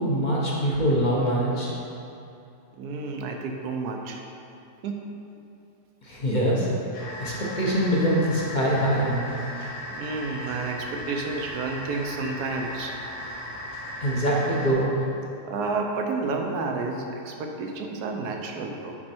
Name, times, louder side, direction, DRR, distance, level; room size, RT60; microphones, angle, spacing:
voice 1, 0.0-1.7 6.0-6.7 7.2-9.3 14.0-14.9, equal, 35° left, -5 dB, 0.9 m, -24 dB
voice 2, 2.8-4.2 4.8-5.0 6.7-6.8 9.9-13.0 15.5-19.0, right 3 dB, 70° right, 2 dB, 1.1 m, -30 dB
sound 1, 6.9-14.7, left 1 dB, 70° left, 1.9 m, -37 dB
8.6 x 4.4 x 4.4 m, 2.7 s
omnidirectional pair, 1.8 m